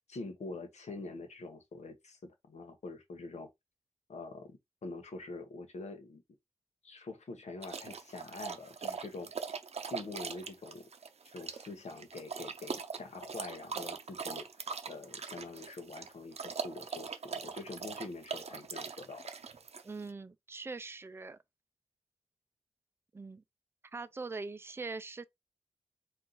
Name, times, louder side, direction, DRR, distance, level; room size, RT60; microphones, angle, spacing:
voice 1, 0.1-3.5 4.1-6.2 6.8-9.3 9.9-10.9 11.3-19.3, left 3 dB, 75° left, 1.2 m, -45 dB
sound 1, 7.6-20.1, right 5 dB, 65° right, 0.6 m, -41 dB
voice 2, 19.8-21.4 23.1-23.4 23.9-25.2, right 3 dB, 20° right, 0.4 m, -42 dB
4.5 x 2.4 x 3.9 m
wide cardioid pair, 125°, 12 cm